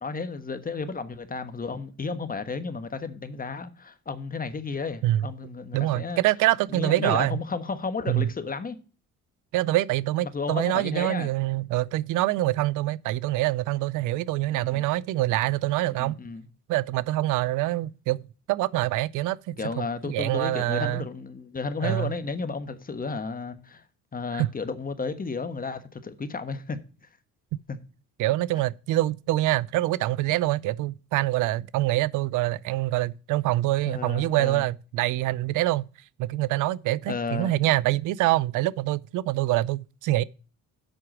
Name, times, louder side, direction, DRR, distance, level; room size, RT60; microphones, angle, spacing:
voice 1, 0.0-6.2 6.7-8.8 10.2-11.3 14.5-14.9 16.0-16.5 19.6-23.8 24.1-26.8 27.7-27.8 33.8-34.7 37.1-37.7, left 4 dB, 30° left, 1.3 m, -33 dB
voice 2, 5.7-7.4 8.1-8.3 9.5-16.2 16.7-18.2 18.5-21.0 21.8-22.1 24.3-24.5 28.2-35.9 36.2-40.2, right 16 dB, 90° right, 0.5 m, -25 dB
8.0 x 5.9 x 6.0 m
cardioid pair, 90°, 30 cm